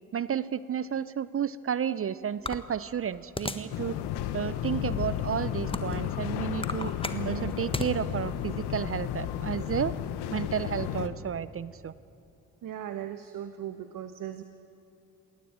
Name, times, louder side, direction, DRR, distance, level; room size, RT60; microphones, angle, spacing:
voice 1, 0.1-4.0 4.3-6.9 7.3-10.0 10.3-11.9, right 8 dB, 35° right, 18 dB, 0.6 m, -32 dB
sound 1, 2.4-3.8 4.3-4.4 5.1-6.1 6.5-7.9, left 2 dB, 15° left, 1.4 m, -35 dB
sound 2, 3.7-11.1, left 10 dB, 65° left, 1.2 m, -33 dB
voice 2, 7.1-7.5 12.6-14.4, right 11 dB, 50° right, 10 dB, 1.1 m, -37 dB
20.5 x 18.0 x 8.8 m, 2.8 s
hypercardioid pair, 45°, 42 cm